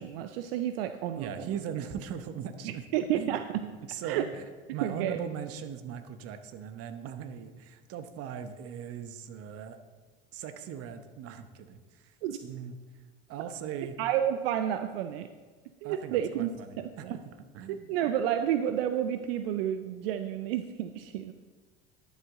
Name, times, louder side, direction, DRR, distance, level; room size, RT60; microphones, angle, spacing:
voice 1, 0.0-1.5 2.6-3.6 4.0-4.2 4.8-5.2 12.2-12.4 14.0-15.3 15.8-16.5 16.8-17.1 17.7-21.3, right 10 dB, 80° right, 9 dB, 0.5 m, -30 dB
voice 2, 1.2-2.8 3.1-4.4 4.7-9.8 10.3-12.1 12.4-12.8 13.3-14.0 15.8-17.9, right 8 dB, 55° right, 9 dB, 1.0 m, -39 dB
12.0 x 7.3 x 3.7 m, 1.4 s
hypercardioid pair, 80°, 29 cm